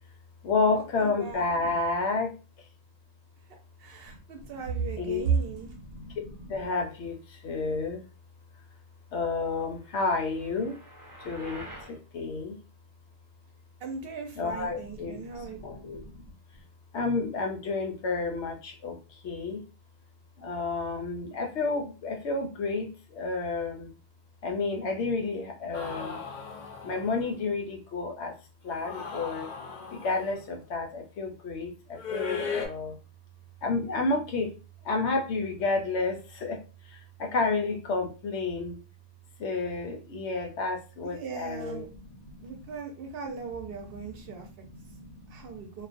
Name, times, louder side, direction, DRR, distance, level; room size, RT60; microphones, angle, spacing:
voice 1, 0.4-2.3 4.7-8.0 9.1-10.8 11.2-12.6 14.4-16.3 16.9-19.6 20.4-23.9 24.4-26.2 26.8-28.3 28.6-29.5 29.9-33.0 33.6-34.5 34.8-36.6 36.9-38.8 39.4-42.6 43.3-45.6, left 3 dB, 80° left, 3 dB, 0.9 m, -31 dB
voice 2, 1.0-1.4 3.8-5.7 13.8-15.6 41.0-41.9 42.4-44.5 45.3-45.9, right 6 dB, 65° right, 3 dB, 0.7 m, -35 dB
sound 1, 9.7-12.0, right 1 dB, 30° right, 0.4 m, -47 dB
sound 2, 25.7-27.4 28.7-30.4 32.0-32.7, left 5 dB, 55° left, 0.6 m, -37 dB
2.4 x 2.1 x 2.5 m, 0.32 s
omnidirectional pair, 1.1 m